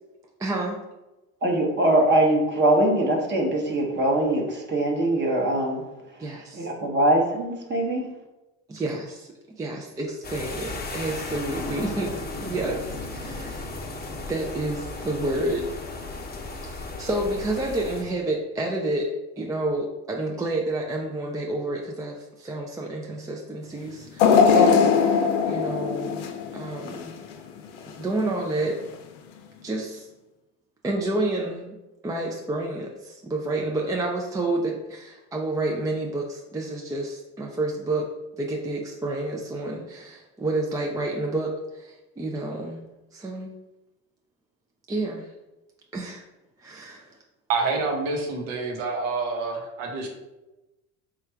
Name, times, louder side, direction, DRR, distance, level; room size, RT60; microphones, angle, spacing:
voice 1, 0.4-0.8 6.2-6.7 8.7-13.7 14.3-15.7 16.6-26.2 26.5-27.2 27.9-28.8 29.6-30.1 30.8-31.8 32.0-38.1 38.4-42.8 43.1-43.5 44.9-45.3 45.9-46.2 46.6-47.2, right 2 dB, 10° right, 0 dB, 0.3 m, -29 dB
voice 2, 1.4-5.8 6.5-8.1, right 1 dB, 30° right, 0 dB, 0.8 m, -22 dB
sound 1, 10.2-18.0, left 2 dB, 25° left, 0.7 m, -35 dB
sound 2, 24.2-27.3 27.8-27.9 28.9-29.0, left 6 dB, 90° left, 0.6 m, -20 dB
voice 3, 47.5-50.1, right 4 dB, 85° right, 1 dB, 1.0 m, -27 dB
3.3 x 2.4 x 4.4 m, 1.0 s
supercardioid pair, 90°, 36 cm